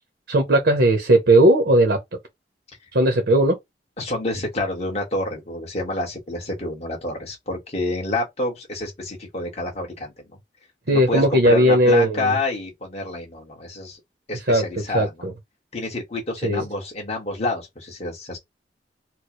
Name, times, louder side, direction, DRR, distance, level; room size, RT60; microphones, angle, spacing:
voice 1, 0.3-2.0 2.9-3.6 10.9-12.3 14.5-14.6 14.9-15.3 16.4-16.6, right 1 dB, 65° right, 0.9 m, -17 dB
voice 2, 4.0-10.1 10.9-14.0 14.3-15.3 15.7-18.4, left 2 dB, 40° left, 1.7 m, -28 dB
4.4 x 2.3 x 3.1 m
head